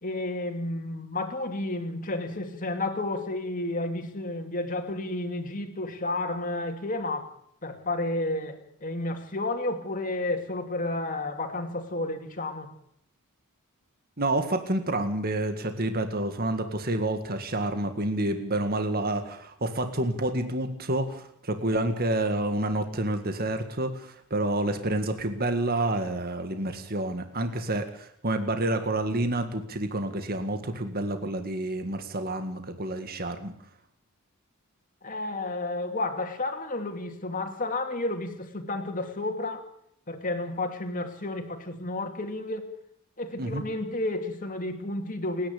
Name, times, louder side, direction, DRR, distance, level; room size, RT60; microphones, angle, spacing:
voice 1, 0.0-7.3 7.6-12.7 35.0-39.7 40.1-42.7 43.2-45.5, left 2 dB, 35° left, 2.6 m, -31 dB
voice 2, 14.2-33.5 43.4-43.6, right 1 dB, 45° right, 1.9 m, -29 dB
29.0 x 10.5 x 8.6 m
head